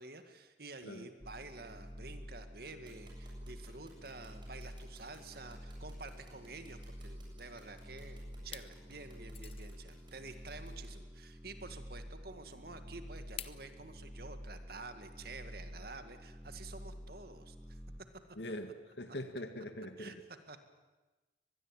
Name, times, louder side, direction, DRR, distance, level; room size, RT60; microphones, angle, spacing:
voice 1, 0.0-17.6 20.0-20.2 20.5-20.6, right 3 dB, 55° right, 8 dB, 2.0 m, -50 dB
sound 1, 1.2-18.0, equal, 10° right, 1.3 m, -49 dB
sound 2, 2.9-10.9, right 3 dB, 25° right, 7.4 m, -61 dB
sound 3, 7.7-8.0 8.4-8.7 9.3-9.8 11.3-11.4 13.4-13.6, left 9 dB, 30° left, 0.9 m, -47 dB
voice 2, 18.4-18.7 19.0-20.2, left 1 dB, 70° left, 8 dB, 1.9 m, -42 dB
24.0 x 20.5 x 9.0 m, 1.2 s
head